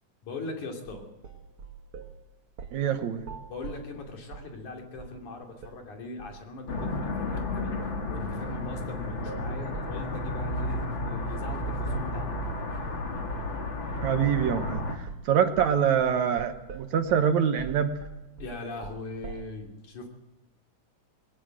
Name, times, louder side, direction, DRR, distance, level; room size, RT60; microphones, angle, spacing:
voice 1, 0.2-1.1 3.5-7.7 8.1-12.5 18.4-20.1, left 2 dB, 65° left, 2 dB, 4.3 m, -40 dB
sound 1, 0.9-2.2 2.6-2.9 3.2-4.6 5.0-5.2 5.6-5.8 6.2-6.4 6.8-7.0 7.3-12.5 12.9-13.1 13.4-13.7 13.9-14.2 14.4-19.5, right 6 dB, 50° right, 1.8 m, -43 dB
voice 2, 2.7-3.2 14.0-17.9, right 8 dB, 65° right, 8 dB, 2.2 m, -25 dB
sound 2, 6.7-15.0, left 2 dB, 40° left, 2.7 m, -32 dB
20.5 x 17.5 x 7.8 m, 1.0 s
omnidirectional pair, 3.8 m